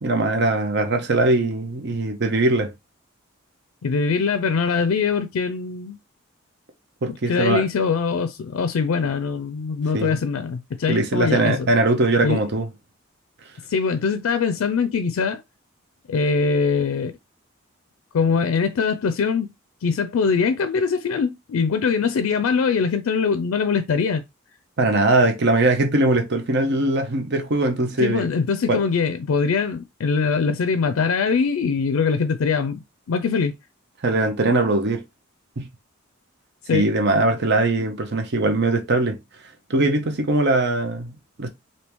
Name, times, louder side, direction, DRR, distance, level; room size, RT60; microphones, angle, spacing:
voice 1, 0.0-2.7 7.0-7.6 9.9-10.2 10.9-12.7 24.8-28.3 28.7-28.8 34.0-35.0 35.6-35.7 36.7-39.2 39.7-41.5, right 2 dB, 55° right, 0.7 m, -21 dB
voice 2, 3.8-6.0 7.3-11.7 12.2-12.4 13.7-15.4 16.1-17.1 18.1-19.5 19.8-24.2 28.0-32.8 33.1-33.5 36.7-36.9, left 5 dB, 85° left, 0.4 m, -22 dB
3.4 x 2.7 x 2.9 m
head